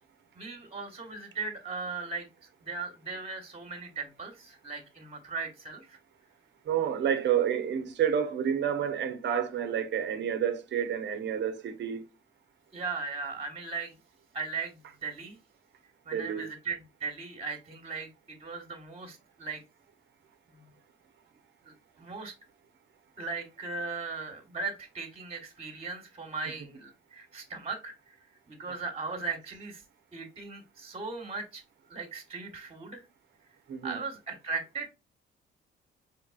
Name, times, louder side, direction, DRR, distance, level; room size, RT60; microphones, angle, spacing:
voice 1, 0.3-6.0 12.7-13.9 14.3-15.4 16.0-19.6 20.5-20.7 21.6-22.3 23.2-28.2 28.5-29.8 30.1-31.6 31.9-33.0 33.8-34.9, right 4 dB, 30° right, 1.4 m, -38 dB
voice 2, 6.7-12.1 16.1-16.5 33.7-34.0, right 8 dB, 65° right, 0.9 m, -29 dB
4.6 x 3.6 x 2.4 m
cardioid pair, 90°, 20 cm